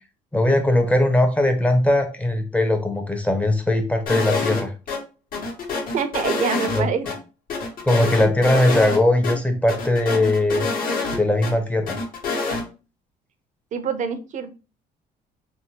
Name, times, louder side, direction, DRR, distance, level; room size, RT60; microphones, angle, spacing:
voice 1, 0.3-4.7 6.7-6.9 7.8-10.7 11.1-12.0, left 1 dB, 10° left, 6 dB, 0.6 m, -20 dB
sound 1, 4.1-4.6 4.9-5.0 5.3-7.1 7.5-9.0 9.2-9.3 9.7-11.5 11.9-12.6, left 3 dB, 55° left, 1.0 m, -26 dB
voice 2, 5.9-7.1 13.7-14.5, right 6 dB, 45° right, 10 dB, 0.5 m, -25 dB
3.4 x 2.1 x 2.8 m, 0.32 s
cardioid pair, 110°, 17 cm